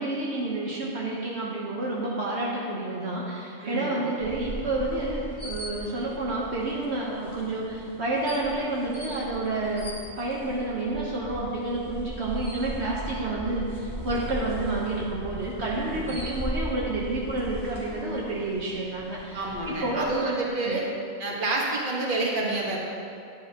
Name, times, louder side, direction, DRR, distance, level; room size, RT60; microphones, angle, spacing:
voice 1, 0.0-20.3 20.6-20.8, right 2 dB, 70° right, -4 dB, 1.3 m, -29 dB
voice 2, 3.6-4.0 15.6-16.1 19.3-20.9 21.2-22.8, right 2 dB, 50° right, -2 dB, 1.5 m, -29 dB
sound 1, 4.2-20.1, equal, 65° left, 2.7 m, -38 dB
10.5 x 10.5 x 2.9 m, 2.5 s
omnidirectional pair, 1.2 m